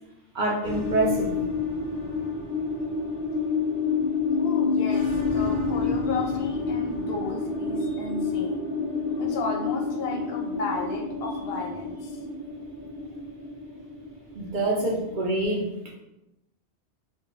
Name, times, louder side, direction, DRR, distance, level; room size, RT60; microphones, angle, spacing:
voice 1, 0.3-1.4 14.3-15.9, right 2 dB, 55° right, -2 dB, 0.6 m, -26 dB
sound 1, 0.6-15.3, left 4 dB, 25° right, 1.2 m, -29 dB
voice 2, 4.3-8.7 9.1-12.2, left 3 dB, 65° left, 1 dB, 0.7 m, -34 dB
4.6 x 2.2 x 2.6 m, 0.93 s
omnidirectional pair, 1.1 m